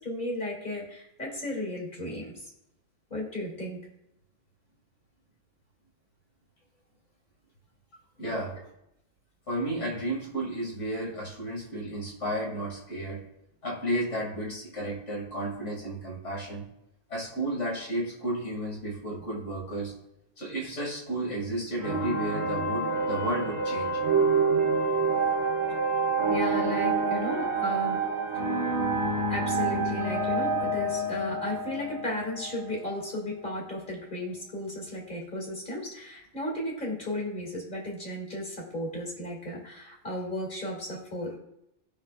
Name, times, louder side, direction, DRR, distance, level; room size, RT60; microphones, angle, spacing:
voice 1, 0.0-2.5 3.1-3.9 25.7-25.9 26.3-28.1 29.3-41.4, left 1 dB, 40° left, -2 dB, 2.6 m, -35 dB
voice 2, 8.2-8.6 9.5-13.2 13.6-16.6 17.1-19.9 20.4-24.0, right 1 dB, 75° left, -4 dB, 2.9 m, -32 dB
sound 1, 21.8-33.0, right 3 dB, 25° right, 1.0 m, -27 dB
16.5 x 5.7 x 2.5 m, 0.82 s
omnidirectional pair, 1.2 m